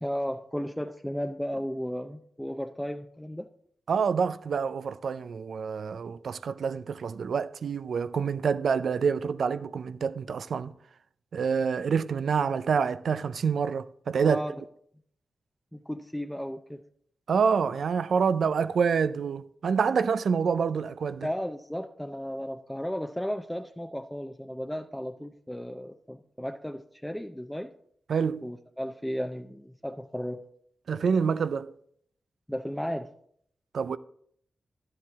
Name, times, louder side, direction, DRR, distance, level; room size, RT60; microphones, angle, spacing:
voice 1, 0.0-3.5 14.2-14.5 15.7-16.8 21.2-27.7 28.4-30.4 32.5-33.1, equal, 5° left, 0.5 m, -34 dB
voice 2, 3.9-10.7 11.3-14.4 17.3-21.3 28.1-28.5 30.9-31.7 33.7-34.0, right 6 dB, 80° right, 0.4 m, -27 dB
11.0 x 7.7 x 3.5 m
cardioid pair, 50°, 0 cm